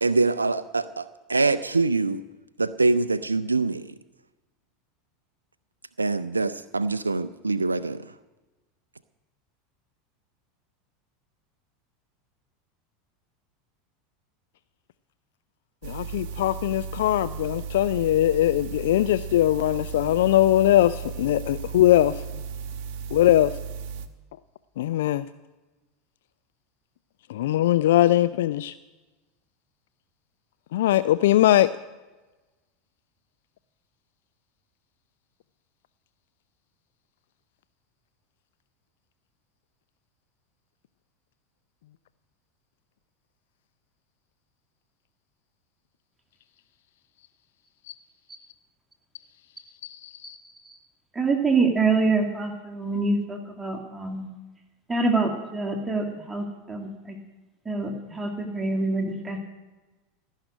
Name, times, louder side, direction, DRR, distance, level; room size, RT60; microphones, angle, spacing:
voice 1, 0.0-2.2 2.6-3.9 6.0-8.0, right 3 dB, 80° right, 0.4 m, -24 dB
voice 2, 15.8-22.2 23.1-23.5 24.8-25.3 27.3-28.7 30.7-31.7 47.9-48.0 49.8-50.4, left 13 dB, 60° left, 0.4 m, -21 dB
sound 1, 15.8-24.1, right 7 dB, 50° right, 1.1 m, -35 dB
voice 3, 51.1-54.3 54.9-57.2 57.7-59.4, right 3 dB, 10° right, 2.3 m, -26 dB
17.5 x 6.5 x 9.5 m
figure-of-eight pair, 80°, 0 cm